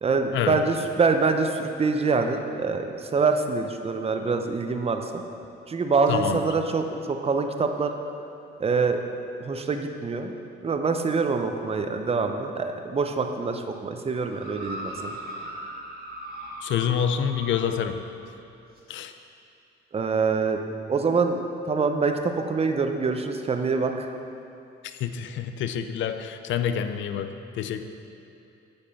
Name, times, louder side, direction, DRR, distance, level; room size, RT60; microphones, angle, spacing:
voice 1, 0.0-5.2 5.7-7.9 8.6-9.0 9.4-10.3 10.6-15.1 19.9-20.6 20.9-21.4 21.7-24.1, right 4 dB, 30° right, 6 dB, 0.7 m, -25 dB
voice 2, 6.1-6.5 16.6-18.0 18.9-19.1 24.8-27.9, left 8 dB, 70° left, 9 dB, 0.5 m, -27 dB
sound 1, 14.3-18.0 18.8-18.9, right 1 dB, 50° right, 1.7 m, -38 dB
8.7 x 5.3 x 5.5 m, 2.7 s
cardioid pair, 90°, 20 cm